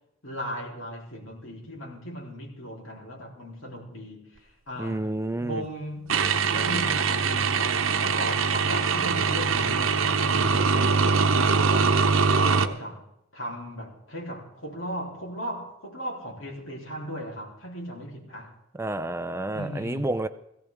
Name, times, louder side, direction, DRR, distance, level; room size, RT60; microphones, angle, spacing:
voice 1, 0.2-5.1 5.4-6.1 6.5-12.0 12.4-13.1 13.3-18.5 19.5-20.2, equal, 80° left, 3.5 m, -37 dB
voice 2, 4.8-5.6 18.7-20.3, right 2 dB, 15° right, 0.4 m, -30 dB
sound 1, 6.1-12.7, right 5 dB, 80° right, 0.9 m, -23 dB
17.5 x 16.5 x 3.6 m
head